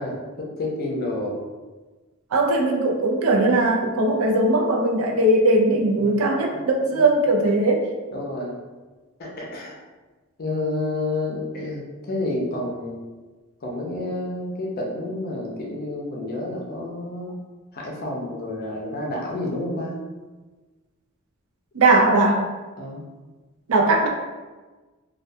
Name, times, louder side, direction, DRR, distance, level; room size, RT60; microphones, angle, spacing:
voice 1, 0.0-1.4 6.0-6.2 6.5-6.6 6.9-7.0 8.1-8.6 9.2-9.8 10.4-13.0 13.6-17.3 17.7-20.0 22.8-23.0, left 2 dB, 45° left, -2 dB, 0.5 m, -29 dB
voice 2, 2.3-7.8 21.7-22.4 23.7-24.1, right 2 dB, 85° right, 1 dB, 0.4 m, -19 dB
2.2 x 2.2 x 2.6 m, 1.3 s
head